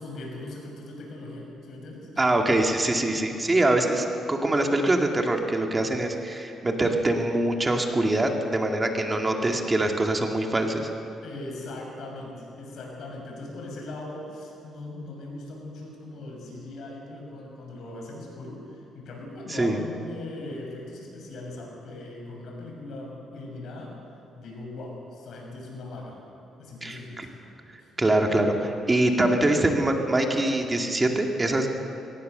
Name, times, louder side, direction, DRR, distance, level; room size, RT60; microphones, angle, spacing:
voice 1, 0.0-2.4 11.2-24.0 24.4-26.2 26.6-27.3 27.8-27.9, left 2 dB, 70° left, 0 dB, 6.5 m, -39 dB
voice 2, 2.2-10.9 19.5-19.8 26.8-27.3 28.0-31.7, right 1 dB, 20° right, 2 dB, 2.3 m, -24 dB
23.0 x 18.0 x 6.8 m, 2.9 s
cardioid pair, 90°, 0 cm